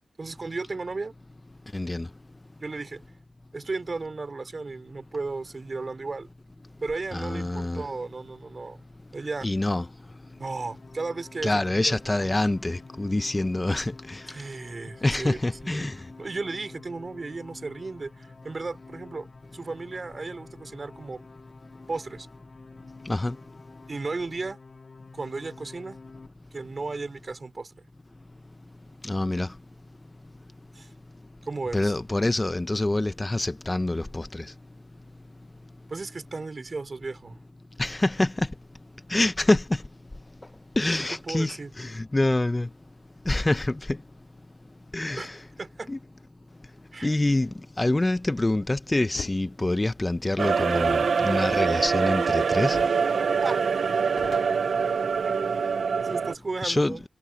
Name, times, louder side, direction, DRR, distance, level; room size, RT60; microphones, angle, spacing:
voice 1, 0.2-1.1 2.6-3.0 3.5-6.3 6.8-8.8 9.1-9.5 10.4-12.4 14.3-15.9 16.2-19.3 19.5-21.2 21.9-22.3 23.9-24.6 25.1-26.0 26.5-27.9 30.7-30.9 31.4-31.9 35.9-37.4 41.3-41.7 45.2-45.3 45.6-45.9 46.9-47.1 53.4-53.7 54.3-54.4 55.2-55.3 56.0-57.0, right 3 dB, 45° right, 3.0 m, -35 dB
voice 2, 1.7-2.1 7.1-7.8 9.4-9.9 11.4-14.2 15.0-15.9 23.1-23.4 29.0-29.5 31.7-34.4 37.8-38.5 39.1-39.6 40.8-42.7 43.3-43.8 44.9-45.4 45.9-46.0 47.0-47.5 47.8-52.8 56.6-57.0, left 2 dB, 25° left, 0.9 m, -26 dB
sound 1, 10.0-26.3, left 4 dB, 50° left, 3.5 m, -49 dB
sound 2, 49.1-49.4 50.8-52.3 52.7-53.1 53.4-53.5 53.8-55.4, left 6 dB, 90° left, 2.0 m, -42 dB
sound 3, 50.4-56.3, right 5 dB, 75° right, 0.6 m, -24 dB
cardioid pair, 65°, 0 cm